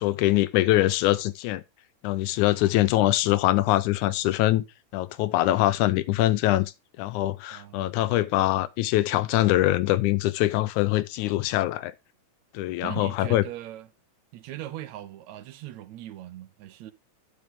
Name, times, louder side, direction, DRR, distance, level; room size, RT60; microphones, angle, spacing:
voice 1, 0.0-1.6 2.0-4.7 4.9-11.9 12.5-13.4, left 16 dB, 85° left, 2.1 m, -23 dB
voice 2, 7.5-8.0 12.8-13.9 14.3-16.9, right 13 dB, 75° right, 1.9 m, -40 dB
10.5 x 6.5 x 3.6 m
omnidirectional pair, 3.4 m